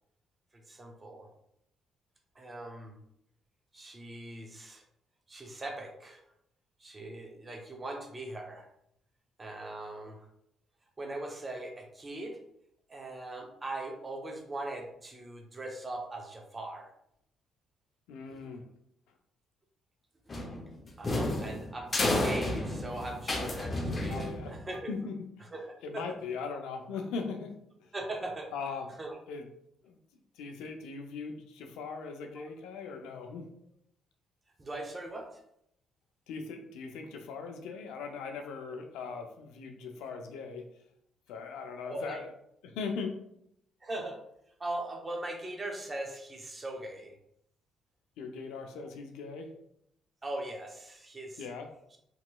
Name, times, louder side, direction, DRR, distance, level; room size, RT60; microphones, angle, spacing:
voice 1, 0.5-1.3 2.3-3.0 3.7-4.8 5.3-6.2 6.8-8.7 9.4-10.3 11.0-12.4 12.9-16.9 18.3-18.4 21.0-24.9 25.4-26.1 27.9-28.5 29.0-29.2 32.3-32.5 34.6-35.4 41.8-42.2 43.8-44.2 44.6-47.2 50.2-51.5, right 2 dB, 30° right, 2 dB, 0.7 m, -40 dB
voice 2, 18.1-18.6 24.1-24.6 24.9-25.3 25.8-27.9 28.5-28.9 29.3-29.4 29.8-30.0 30.4-33.5 36.3-40.7 41.3-42.3 42.6-43.2 48.2-49.5 51.4-51.7, left 5 dB, 85° left, 5 dB, 0.4 m, -39 dB
sound 1, 20.3-24.7, left 1 dB, 35° left, 0.6 m, -31 dB
3.0 x 2.9 x 2.2 m, 0.74 s
supercardioid pair, 70°, 0 cm